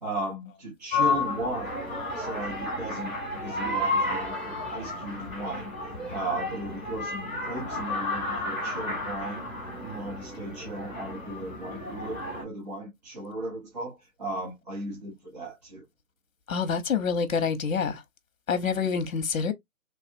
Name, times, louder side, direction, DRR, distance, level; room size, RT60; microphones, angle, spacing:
voice 1, 0.0-1.7 2.1-5.7 6.1-9.5 9.8-15.8, right 2 dB, 30° right, 0.9 m, -36 dB
sound 1, 0.9-12.4, left 2 dB, 5° left, 0.7 m, -32 dB
voice 2, 16.5-18.0 18.5-19.5, left 6 dB, 65° left, 0.8 m, -27 dB
3.3 x 2.3 x 2.5 m
hypercardioid pair, 165°, 43 cm